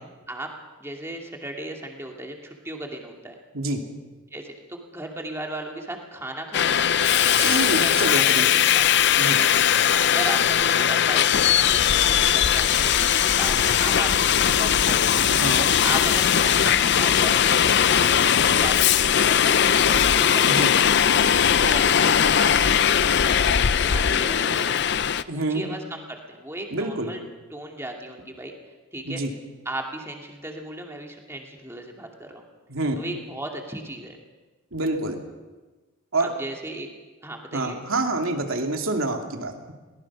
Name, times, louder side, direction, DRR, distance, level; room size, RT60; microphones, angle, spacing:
voice 1, 0.8-3.4 4.3-8.8 9.9-15.1 15.8-20.7 21.1-24.8 25.3-27.2 27.5-28.5 28.9-29.2 29.7-32.4 33.0-34.2 36.4-36.9 37.2-37.8, right 1 dB, 10° right, 1 dB, 2.4 m, -36 dB
Subway metro underground, 6.5-25.2, left 9 dB, 55° left, 0.5 m, -19 dB
voice 2, 7.4-8.5 9.2-9.4 15.3-15.7 20.5-20.7 25.3-25.7 26.7-27.1 29.1-29.3 32.7-33.0 34.7-35.2 36.1-36.3 37.5-39.7, right 2 dB, 75° right, 3 dB, 2.6 m, -27 dB
22.5 x 19.0 x 6.1 m, 1.2 s
head